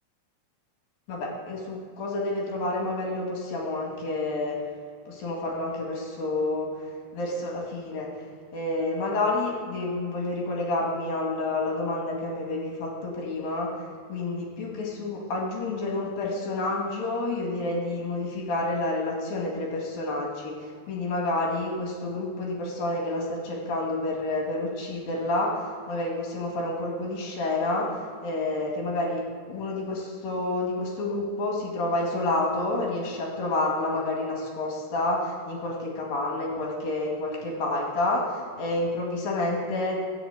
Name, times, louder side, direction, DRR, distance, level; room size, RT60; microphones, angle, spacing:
voice 1, 1.1-4.6 5.1-40.0, left 2 dB, 55° left, -1 dB, 3.3 m, -29 dB
14.5 x 7.2 x 8.2 m, 2.1 s
omnidirectional pair, 5.5 m